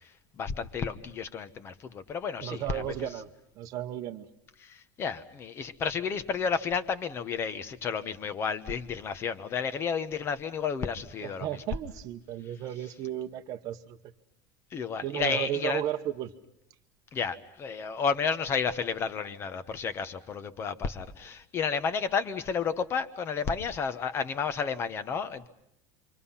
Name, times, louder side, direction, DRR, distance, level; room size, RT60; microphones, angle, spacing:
voice 1, 0.0-3.1 4.6-11.6 14.7-15.8 17.1-25.5, left 6 dB, 25° left, 11 dB, 1.1 m, -32 dB
voice 2, 2.4-3.3 3.6-4.3 11.2-14.0 15.0-16.3, right 11 dB, 40° right, 6 dB, 1.0 m, -34 dB
29.0 x 24.5 x 5.7 m, 0.78 s
cardioid pair, 165°, 10 cm